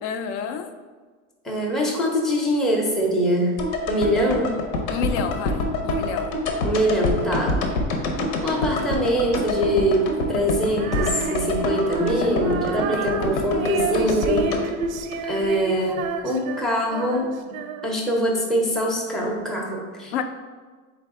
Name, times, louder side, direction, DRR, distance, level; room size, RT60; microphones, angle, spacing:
voice 1, 0.0-0.7 4.9-6.4 12.9-13.3 20.1-20.2, left 7 dB, 55° left, 8 dB, 0.5 m, -29 dB
voice 2, 1.4-3.5 3.9-4.5 6.6-7.5 8.4-14.5 15.3-17.6 17.8-20.2, equal, ahead, -3 dB, 0.5 m, -23 dB
sound 1, 3.6-15.8 16.0-16.1, left 2 dB, 80° left, 0.9 m, -27 dB
Female singing, 10.8-18.1, right 5 dB, 80° right, 0.6 m, -31 dB
3.9 x 3.4 x 3.6 m, 1.4 s
supercardioid pair, 125°, 41 cm